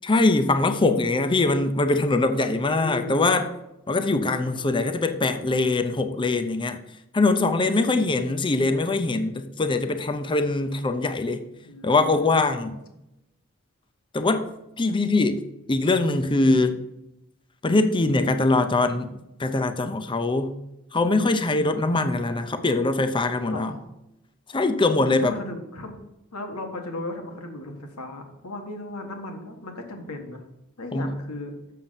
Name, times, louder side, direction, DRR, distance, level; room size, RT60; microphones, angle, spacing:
voice 1, 0.0-3.5 3.9-6.8 7.1-11.4 11.8-12.8 14.1-14.5 14.8-15.4 15.7-16.8 17.6-20.6 20.9-23.7 24.5-25.3 30.9-31.1, left 2 dB, 25° left, 9 dB, 0.6 m, -22 dB
voice 2, 2.4-3.2 7.8-8.2 11.6-12.7 16.4-16.6 23.5-23.9 24.9-26.0 26.3-30.4 30.8-31.6, left 2 dB, 80° left, 3 dB, 1.5 m, -37 dB
7.4 x 6.5 x 5.7 m, 0.88 s
head